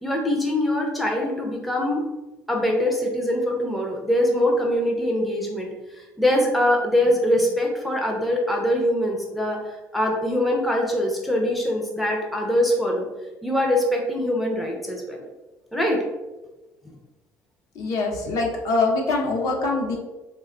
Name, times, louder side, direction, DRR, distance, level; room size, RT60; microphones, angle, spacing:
voice 1, 0.0-2.0 2.5-5.7 6.2-13.1 13.4-15.2 15.7-16.0, left 1 dB, ahead, -1 dB, 0.4 m, -23 dB
voice 2, 17.7-20.0, left 3 dB, 65° left, 0 dB, 0.7 m, -24 dB
3.2 x 2.2 x 3.6 m, 1.1 s
cardioid pair, 165°, 6 cm